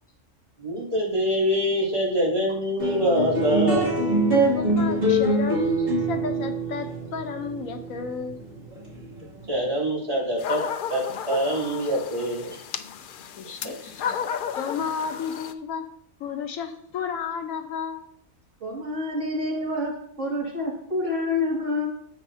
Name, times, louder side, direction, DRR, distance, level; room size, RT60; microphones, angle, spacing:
voice 1, 0.6-4.0 9.5-10.6 10.9-12.6 13.4-13.9, equal, 25° right, -6 dB, 3.4 m, -25 dB
sound 1, 2.8-9.4, right 1 dB, 45° right, 3.0 m, -24 dB
voice 2, 4.5-8.4 13.4-14.2 14.6-15.9 16.2-18.1, left 6 dB, 90° left, 7 dB, 1.3 m, -32 dB
sound 2, 10.4-15.5, left 7 dB, 65° left, 0.5 m, -33 dB
voice 3, 18.6-21.9, left 2 dB, 60° right, -4 dB, 2.8 m, -28 dB
9.8 x 8.0 x 2.8 m, 0.66 s
omnidirectional pair, 1.4 m